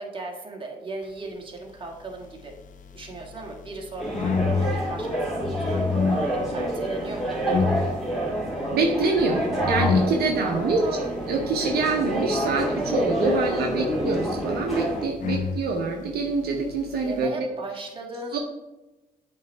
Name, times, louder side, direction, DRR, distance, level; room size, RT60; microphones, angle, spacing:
voice 1, 0.0-2.5 2.9-5.8 6.3-8.0 10.4-11.1 13.3-14.1 17.0-18.4, right 3 dB, 30° right, 0 dB, 1.7 m, -37 dB
sound 1, 1.8-17.3, left 5 dB, 50° left, 0.5 m, -31 dB
sound 2, 4.0-15.1, right 1 dB, ahead, 2.2 m, -28 dB
voice 2, 8.7-10.8 11.3-17.5 18.3-18.4, right 4 dB, 70° right, 1 dB, 0.9 m, -26 dB
7.7 x 3.3 x 4.4 m, 1.0 s
cardioid pair, 75°, 17 cm